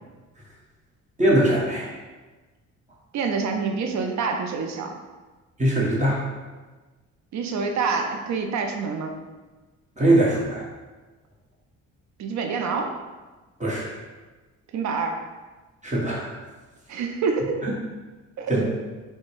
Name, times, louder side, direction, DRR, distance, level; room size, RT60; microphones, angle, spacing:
voice 1, 1.2-1.9 5.6-6.2 10.0-10.6 13.6-13.9 15.8-16.3 18.5-18.6, right 1 dB, 25° right, -5 dB, 1.1 m, -21 dB
voice 2, 3.1-5.0 7.3-9.1 12.2-12.9 14.7-15.2 16.9-17.7 18.4-18.5, right 5 dB, 65° right, 4 dB, 0.5 m, -26 dB
3.9 x 2.2 x 4.5 m, 1.3 s
cardioid pair, 90°, 30 cm